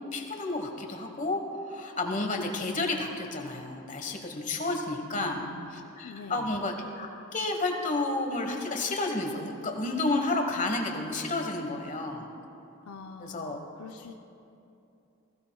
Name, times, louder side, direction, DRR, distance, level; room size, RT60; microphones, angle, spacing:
voice 1, 0.1-5.4 5.7-12.3 13.2-13.6, left 2 dB, 35° left, 3 dB, 1.3 m, -31 dB
voice 2, 5.1-6.5 12.9-14.1, left 4 dB, 80° left, 3 dB, 0.6 m, -45 dB
20.5 x 16.0 x 2.3 m, 2.7 s
head